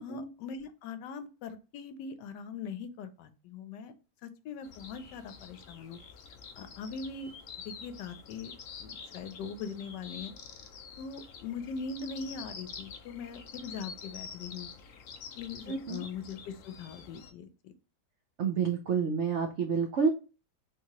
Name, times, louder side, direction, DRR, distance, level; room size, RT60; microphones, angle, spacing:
voice 1, 0.0-3.9 4.2-6.0 6.6-7.3 7.6-10.3 11.0-14.7 15.4-17.7, left 5 dB, 80° left, 10 dB, 1.2 m, -41 dB
sound 1, 4.6-17.3, left 6 dB, 60° left, 0.9 m, -47 dB
voice 2, 15.7-16.0 18.4-20.1, right 6 dB, 85° right, 4 dB, 0.6 m, -29 dB
3.5 x 2.8 x 2.9 m, 0.33 s
omnidirectional pair, 1.8 m